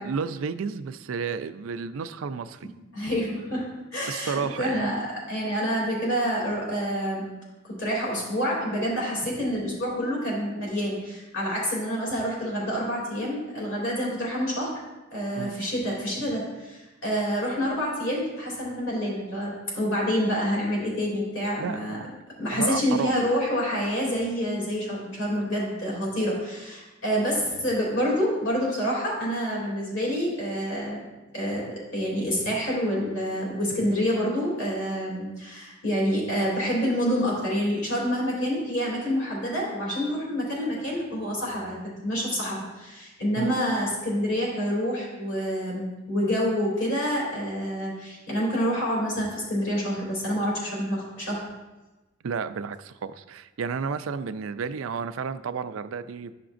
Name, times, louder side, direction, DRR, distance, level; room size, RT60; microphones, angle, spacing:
voice 1, 0.0-2.7 4.1-4.8 15.4-15.5 21.6-22.0 22.5-23.2 43.4-43.5 52.2-56.3, right 5 dB, 85° right, 12 dB, 0.4 m, -32 dB
voice 2, 2.9-3.6 3.9-7.3 7.6-14.7 15.1-22.0 22.4-31.0 31.3-51.4, equal, 65° left, -4 dB, 2.6 m, -27 dB
12.0 x 5.9 x 2.5 m, 1.1 s
head